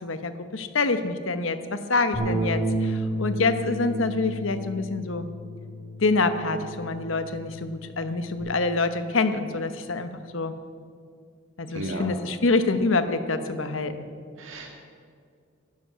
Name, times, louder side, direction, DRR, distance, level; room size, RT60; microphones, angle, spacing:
voice 1, 0.0-5.3 6.0-10.5 11.6-13.9, left 3 dB, 75° left, 10 dB, 1.0 m, -26 dB
Bass guitar, 2.1-8.4, right 1 dB, ahead, 5.0 m, -32 dB
voice 2, 11.7-12.1 14.4-14.7, right 1 dB, 75° right, 0 dB, 2.0 m, -34 dB
12.0 x 11.0 x 8.5 m, 2.2 s
head